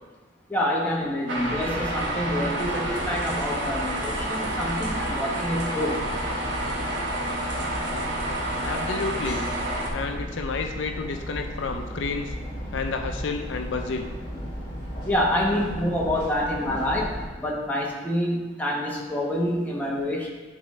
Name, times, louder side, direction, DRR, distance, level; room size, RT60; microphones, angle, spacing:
voice 1, 0.5-6.0 15.0-20.3, left 1 dB, 10° left, -4 dB, 1.1 m, -27 dB
sound 1, 1.3-9.9, right 1 dB, 70° right, 1.1 m, -29 dB
sound 2, 1.4-17.2, equal, 25° left, 1.9 m, -35 dB
voice 2, 8.6-9.5 9.9-12.3 12.7-14.1, left 4 dB, 75° left, 5 dB, 0.5 m, -30 dB
11.0 x 4.0 x 3.2 m, 1.3 s
head